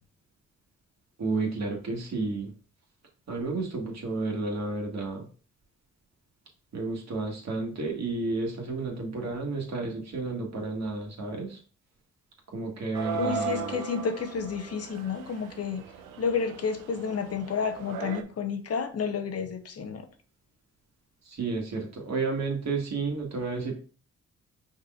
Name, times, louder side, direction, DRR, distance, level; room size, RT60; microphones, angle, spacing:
voice 1, 1.2-2.5 3.3-5.3 6.7-11.6 12.5-13.8 21.3-23.7, right 3 dB, 55° right, 1.8 m, -31 dB
sound 1, 12.9-18.2, right 7 dB, 85° right, 0.6 m, -37 dB
voice 2, 13.1-15.8 16.2-20.1, left 6 dB, 50° left, 0.8 m, -31 dB
5.3 x 4.0 x 2.5 m
supercardioid pair, 55°, 31 cm